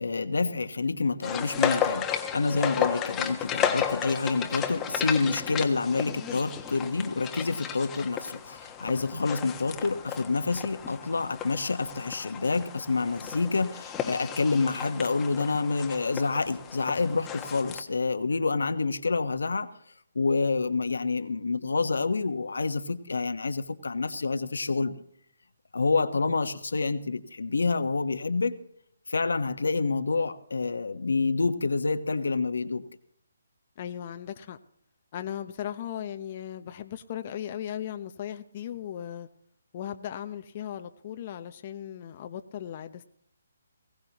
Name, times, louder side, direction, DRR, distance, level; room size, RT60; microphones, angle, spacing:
voice 1, 0.0-19.7 20.1-25.0 25.7-28.5 29.1-32.8, left 4 dB, 75° left, 1.3 m, -28 dB
sound 1, 1.2-17.8, left 8 dB, 15° left, 1.4 m, -34 dB
voice 2, 33.8-34.6 35.1-39.3 39.7-43.0, left 10 dB, 40° left, 0.9 m, -37 dB
20.5 x 17.0 x 3.0 m
figure-of-eight pair, 150°, 0 cm